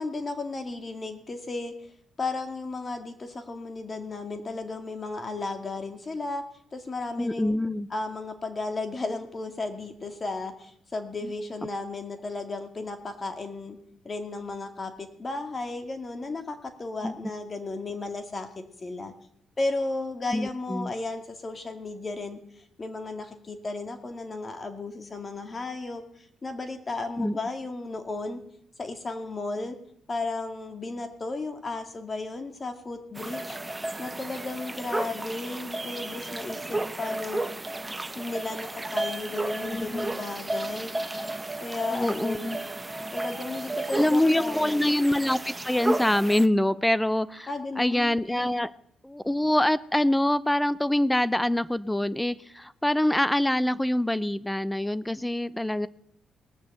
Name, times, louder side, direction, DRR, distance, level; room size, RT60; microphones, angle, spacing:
voice 1, 0.0-1.7 2.2-6.4 6.7-7.5 7.9-13.8 14.0-19.1 19.6-26.0 26.4-28.4 28.8-29.8 30.1-33.6 34.0-37.4 38.2-40.9 41.6-42.6 43.1-44.9 47.5-48.1, left 3 dB, 30° left, 7 dB, 2.1 m, -34 dB
voice 2, 7.2-7.9 11.2-11.3 17.0-17.1 20.3-20.9 27.2-27.4 39.6-40.2 41.9-42.6 43.9-47.5 47.8-48.7 49.0-55.9, left 1 dB, 5° left, 18 dB, 0.6 m, -25 dB
sound 1, 33.1-46.5, right 2 dB, 15° right, 0.9 m, -33 dB
19.0 x 6.8 x 7.8 m, 0.74 s
cardioid pair, 90°, 0 cm